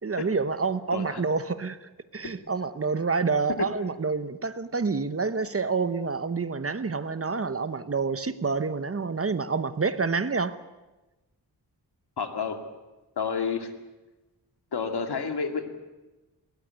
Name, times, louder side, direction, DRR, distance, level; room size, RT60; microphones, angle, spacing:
voice 1, 0.0-10.5, right 4 dB, 35° right, 13 dB, 0.9 m, -28 dB
voice 2, 0.9-1.2 7.3-7.5 12.2-12.6 13.2-13.7 14.7-15.7, left 5 dB, 70° left, 6 dB, 2.5 m, -30 dB
20.5 x 19.0 x 9.4 m, 1.1 s
wide cardioid pair, 130°, 40 cm